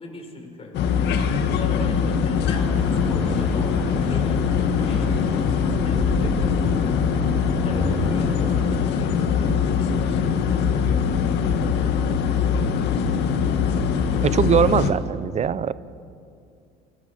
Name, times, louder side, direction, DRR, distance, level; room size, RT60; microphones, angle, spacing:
voice 1, 0.0-7.0 7.6-12.0 12.4-13.1, left 2 dB, 30° left, 2 dB, 6.6 m, -39 dB
sound 1, 0.7-14.9, left 6 dB, 65° left, 2.1 m, -22 dB
sound 2, 2.4-8.6, equal, 5° left, 6.3 m, -32 dB
voice 2, 14.2-15.7, right 8 dB, 35° right, 17 dB, 0.9 m, -21 dB
28.5 x 21.5 x 6.9 m, 2.4 s
supercardioid pair, 85°, 19 cm